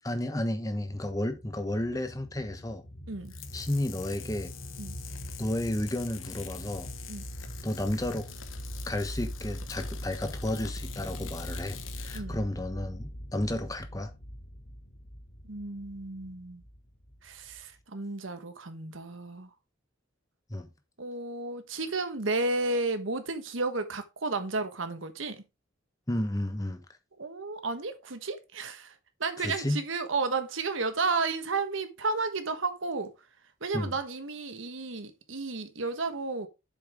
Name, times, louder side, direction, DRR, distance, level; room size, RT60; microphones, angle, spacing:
voice 1, 0.0-2.8 3.5-4.5 5.4-6.9 7.6-8.3 8.9-14.1 20.5-20.7 26.1-26.8 29.4-29.8 33.7-34.0, left 1 dB, 15° left, 1.1 m, -32 dB
sound 1, 1.3-17.8, equal, 60° left, 2.3 m, -42 dB
sound 2, 3.3-12.2, left 8 dB, 90° left, 1.2 m, -46 dB
voice 2, 15.5-16.6 17.2-19.5 21.0-25.4 27.2-28.9 29.2-33.1 33.6-36.5, right 3 dB, 80° right, 1.3 m, -32 dB
8.0 x 6.8 x 3.5 m
head